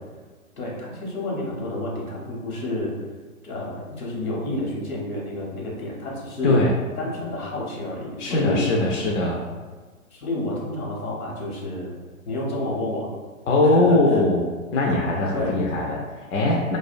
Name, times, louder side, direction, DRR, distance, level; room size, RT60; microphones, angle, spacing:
voice 1, 0.6-2.9 3.4-6.6 7.0-8.6 10.1-12.0 12.3-13.1 13.6-14.2 15.3-15.6, left 1 dB, 80° left, -3 dB, 0.9 m, -30 dB
voice 2, 6.4-6.7 8.2-9.4 13.5-14.4 14.7-16.8, left 2 dB, 60° left, -2 dB, 0.5 m, -21 dB
2.4 x 2.1 x 2.5 m, 1.4 s
hypercardioid pair, 140°, 42 cm